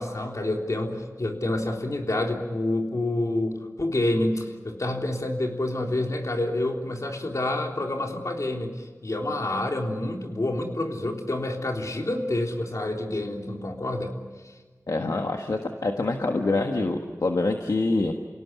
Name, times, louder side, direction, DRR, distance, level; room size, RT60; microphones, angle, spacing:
voice 1, 0.0-14.1, left 1 dB, 65° left, 2 dB, 3.5 m, -28 dB
voice 2, 14.9-18.1, left 2 dB, 80° left, 3 dB, 1.5 m, -25 dB
28.5 x 18.0 x 9.5 m, 1.3 s
wide cardioid pair, 55°, 6 cm